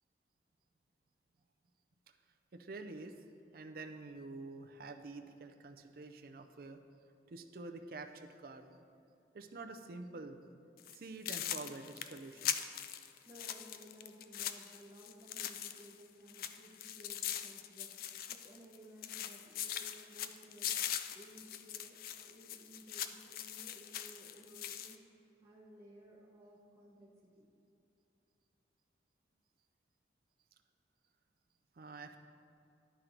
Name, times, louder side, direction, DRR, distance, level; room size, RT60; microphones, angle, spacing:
voice 1, 2.5-3.1 3.5-6.8 7.3-8.8 9.3-10.4 10.9-12.6 31.8-32.2, right 3 dB, 55° right, 6 dB, 0.5 m, -48 dB
sound 1, 10.8-11.0 11.3-16.0 16.3-18.8 19.0-25.0, left 10 dB, 55° left, 0.3 m, -41 dB
voice 2, 13.3-20.8 21.1-25.0 25.4-27.5, equal, 15° right, -6 dB, 0.8 m, -57 dB
11.5 x 4.4 x 3.9 m, 2.6 s
head